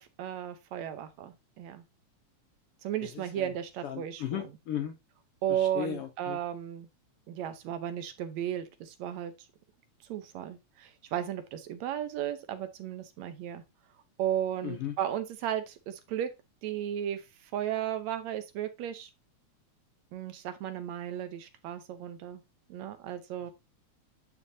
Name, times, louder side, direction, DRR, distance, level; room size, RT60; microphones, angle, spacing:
voice 1, 0.0-1.8 2.8-4.5 5.4-6.9 7.3-9.3 10.1-13.6 14.2-16.3 16.6-19.1 20.1-22.4 22.7-23.5, right 10 dB, 75° right, 2.0 m, -35 dB
voice 2, 3.8-4.9 5.6-6.4 14.6-14.9, left 10 dB, 75° left, 1.4 m, -35 dB
9.8 x 5.1 x 2.7 m
omnidirectional pair, 3.4 m